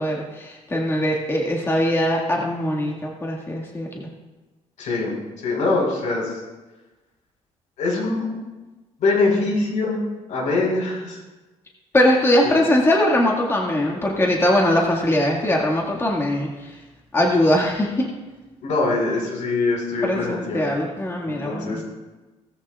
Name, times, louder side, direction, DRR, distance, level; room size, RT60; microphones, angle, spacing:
voice 1, 0.0-4.1 11.9-16.8 17.1-18.1 20.0-21.8, left 1 dB, 20° left, -2 dB, 1.9 m, -21 dB
voice 2, 4.8-5.2 5.4-6.3 7.8-8.3 9.0-10.0 10.3-11.2 12.4-12.6 18.6-20.6 21.2-21.8, left 3 dB, 90° left, 0 dB, 4.6 m, -23 dB
19.0 x 14.0 x 2.4 m, 1.2 s
cardioid pair, 140°, 12 cm